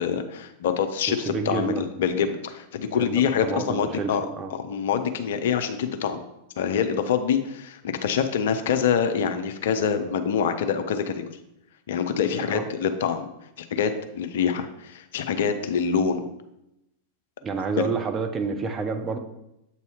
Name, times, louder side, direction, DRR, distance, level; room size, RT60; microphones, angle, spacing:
voice 1, 0.0-1.7 2.0-4.3 4.5-6.2 6.6-11.3 11.9-13.3 13.6-16.3 17.8-17.9, left 7 dB, 55° left, 8 dB, 0.5 m, -25 dB
voice 2, 1.2-1.8 2.9-4.5 12.4-12.6 17.4-19.2, right 5 dB, 25° right, 5 dB, 0.6 m, -29 dB
7.7 x 2.7 x 4.7 m, 0.87 s
figure-of-eight pair, 90°, 0 cm